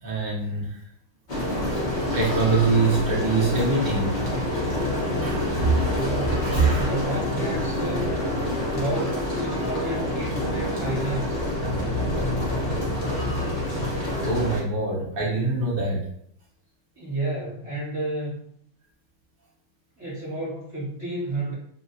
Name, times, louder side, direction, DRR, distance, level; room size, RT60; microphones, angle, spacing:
voice 1, 0.0-0.8 1.8-4.1 5.2-7.0 9.5-9.7 12.9-13.9 14.2-16.1, right 3 dB, 85° right, -6 dB, 0.5 m, -25 dB
sound 1, 1.3-14.6, left 1 dB, 40° left, 0.7 m, -27 dB
voice 2, 5.9-8.1 8.7-11.5 16.9-18.4 20.0-21.5, right 1 dB, 20° right, -8 dB, 1.4 m, -31 dB
3.0 x 2.8 x 2.6 m, 0.66 s
omnidirectional pair, 2.1 m